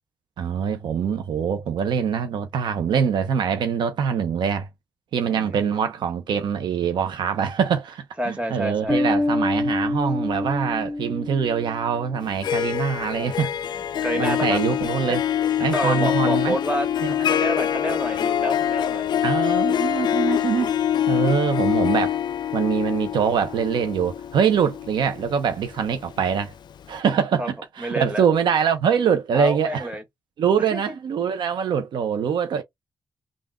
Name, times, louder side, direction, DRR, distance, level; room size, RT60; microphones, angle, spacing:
voice 1, 0.4-4.7 5.1-13.6 14.2-15.2 15.6-16.6 17.0-17.1 19.2-20.7 21.1-22.2 22.5-26.5 26.9-29.9 30.4-32.6, right 7 dB, 85° right, 0.7 m, -24 dB
voice 2, 5.3-5.7 8.2-9.0 13.2-13.3 14.0-14.6 15.1-15.2 15.7-19.1 27.4-27.5 27.8-28.2 29.3-30.0 30.7-31.0, right 1 dB, 15° right, 1.7 m, -28 dB
Bass guitar, 8.9-12.4, left 2 dB, 15° left, 0.7 m, -26 dB
Harp, 12.2-26.2, left 10 dB, 75° left, 0.4 m, -24 dB
3.6 x 2.5 x 3.4 m
cardioid pair, 60°, 8 cm